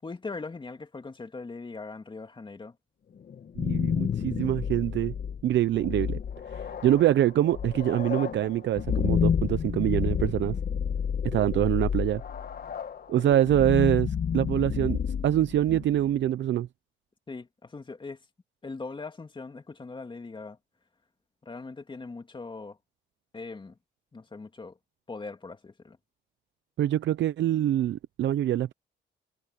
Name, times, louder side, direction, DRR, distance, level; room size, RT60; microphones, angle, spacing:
voice 1, 0.0-2.8 17.3-18.2 18.6-20.6 21.4-22.8 23.3-23.8 24.1-24.8 25.1-26.0, left 3 dB, 25° left, 2.6 m, -40 dB
sound 1, 3.3-16.2, left 7 dB, 50° left, 1.6 m, -30 dB
voice 2, 3.6-5.1 5.4-6.2 6.5-10.6 11.2-12.2 13.1-16.7 26.8-28.7, right 12 dB, 70° right, 0.7 m, -25 dB
cardioid pair, 90°, 20 cm